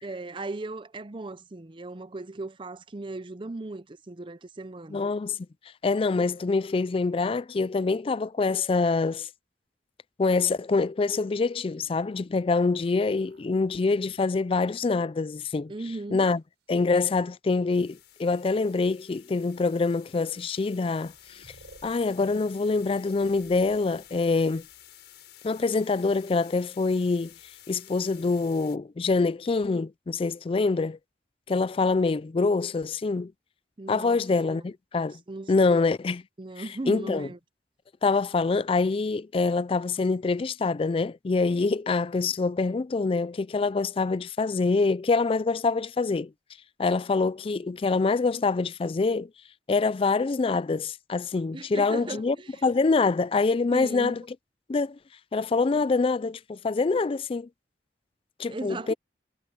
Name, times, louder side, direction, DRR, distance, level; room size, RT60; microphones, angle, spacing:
voice 1, 0.0-5.1 15.7-16.3 33.8-34.6 35.3-35.8 36.4-37.4 51.5-52.5 53.7-54.2 58.5-58.9, right 2 dB, 30° right, 0.6 m, -37 dB
voice 2, 4.9-5.4 5.8-9.3 10.2-15.7 16.1-16.4 16.7-21.5 21.8-24.7 25.4-27.3 27.7-31.0 31.5-33.3 33.9-35.2 35.5-36.2 36.9-37.3 38.0-46.3 46.8-49.3 49.7-52.4 52.6-54.2 54.7-55.0 55.3-57.5 58.4-58.9, left 4 dB, 30° left, 0.3 m, -25 dB
sound 1, 11.8-15.7 16.4-17.1 18.2-18.3 19.0-19.2 20.4-20.5 20.6-25.1 27.0-27.7, right 1 dB, 80° right, 5.0 m, -60 dB
sound 2, 17.7-28.8, left 12 dB, 75° left, 5.5 m, -52 dB
head